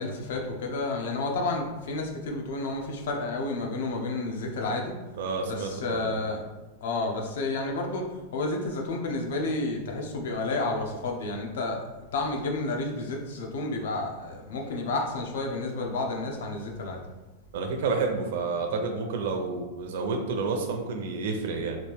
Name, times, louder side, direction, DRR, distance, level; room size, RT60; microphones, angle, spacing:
voice 1, 0.0-5.0 5.4-6.4 6.8-11.8 12.1-17.0, left 2 dB, 70° left, 2 dB, 0.6 m, -31 dB
voice 2, 5.2-6.2 17.5-21.8, right 4 dB, 60° right, 3 dB, 0.5 m, -30 dB
3.1 x 2.5 x 3.4 m, 1.1 s
supercardioid pair, 170°, 0 cm